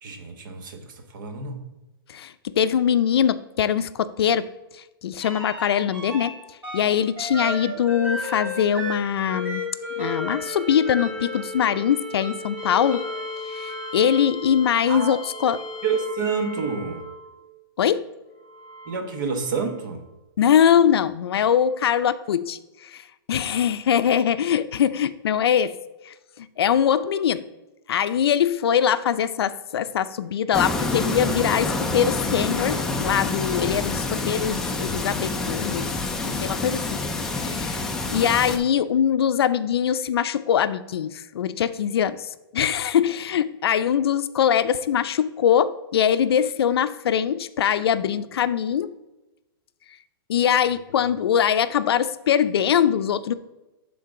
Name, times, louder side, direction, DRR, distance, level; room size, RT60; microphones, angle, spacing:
voice 1, 0.0-1.6 14.9-15.2 15.5-17.1 18.9-20.0, right 5 dB, 55° right, 6 dB, 1.2 m, -29 dB
voice 2, 2.1-4.5 4.7-6.3 6.7-9.6 10.0-13.0 13.5-15.6 17.8-18.1 20.4-25.7 26.0-27.4 27.9-35.9 36.2-37.0 37.3-48.9 50.3-53.3, left 9 dB, 85° left, 14 dB, 0.5 m, -22 dB
sound 1, 5.2-6.3 6.6-17.4 18.3-19.8 21.5-21.6, left 1 dB, 15° right, 1.6 m, -34 dB
sound 2, 30.5-38.6, left 3 dB, 5° left, 0.4 m, -27 dB
11.0 x 3.9 x 3.7 m, 1.0 s
hypercardioid pair, 165°, 13 cm